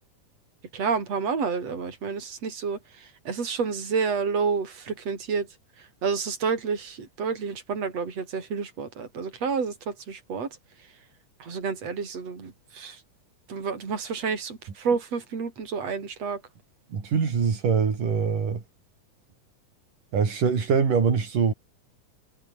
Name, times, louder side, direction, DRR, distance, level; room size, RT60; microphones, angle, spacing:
voice 1, 0.7-5.5 5.8-10.6 11.4-13.0 13.5-16.4, right 5 dB, 50° right, 5.7 m, -29 dB
voice 2, 16.9-18.6 20.1-21.5, right 6 dB, 85° right, 5.7 m, -23 dB
omnidirectional pair, 3.7 m